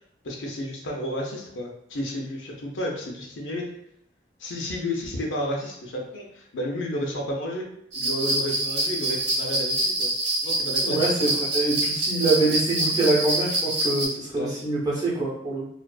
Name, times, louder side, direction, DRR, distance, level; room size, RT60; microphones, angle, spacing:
voice 1, 0.2-3.6 4.4-7.6 7.9-10.1 10.4-11.1 14.3-14.6, left 1 dB, 90° left, 0 dB, 0.6 m, -31 dB
sound 1, 7.9-14.1, right 1 dB, 70° right, 0.8 m, -26 dB
voice 2, 10.8-15.7, right 2 dB, 20° right, -6 dB, 0.7 m, -25 dB
2.5 x 2.3 x 2.2 m, 0.77 s
head